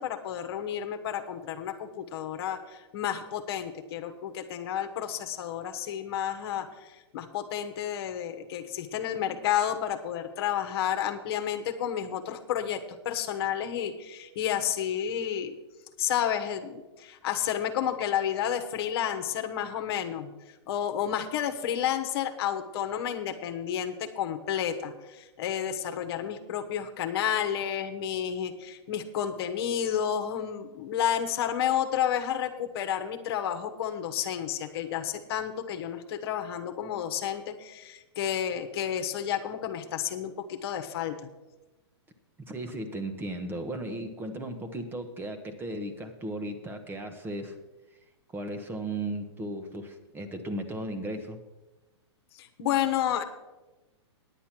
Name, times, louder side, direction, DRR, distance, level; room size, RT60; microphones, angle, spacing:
voice 1, 0.0-15.5 16.0-20.3 20.7-41.3 52.3-53.2, left 9 dB, 60° left, 7 dB, 1.2 m, -31 dB
voice 2, 42.5-47.6 48.3-51.4, right 1 dB, 15° right, 7 dB, 1.0 m, -36 dB
10.0 x 8.4 x 5.9 m, 1.1 s
hypercardioid pair, 125°, 15 cm